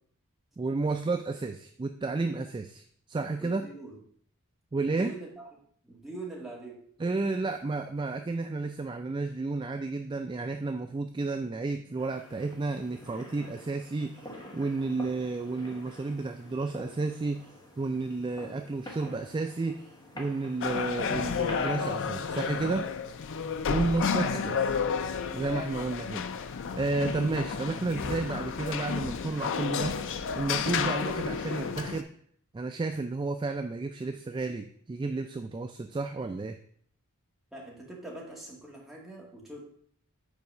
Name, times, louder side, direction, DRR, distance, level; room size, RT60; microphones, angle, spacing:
voice 1, 0.6-3.6 4.7-5.1 7.0-19.9 20.2-22.9 23.7-24.7 25.3-26.3 26.7-30.0 30.3-32.1 32.5-36.6, right 3 dB, 20° right, 6 dB, 0.3 m, -32 dB
voice 2, 3.4-4.0 4.7-5.4 5.8-6.8 23.7-23.8 37.5-39.6, right 2 dB, ahead, -4 dB, 1.9 m, -43 dB
sound 1, 12.0-21.9, left 1 dB, 20° left, 1.3 m, -47 dB
sound 2, 20.6-32.0, left 6 dB, 60° left, 0.5 m, -31 dB
5.4 x 4.6 x 6.1 m, 0.62 s
head